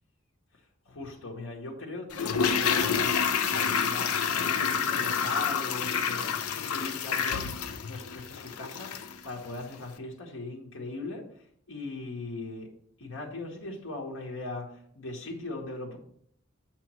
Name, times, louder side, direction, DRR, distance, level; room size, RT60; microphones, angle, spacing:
voice 1, 0.8-3.2 3.5-12.7 13.0-16.0, left 2 dB, 65° left, -1 dB, 1.2 m, -39 dB
Toilet flush, 2.1-9.2 9.5-9.6, left 6 dB, 85° left, 0.6 m, -28 dB
7.9 x 3.0 x 6.1 m, 0.64 s
head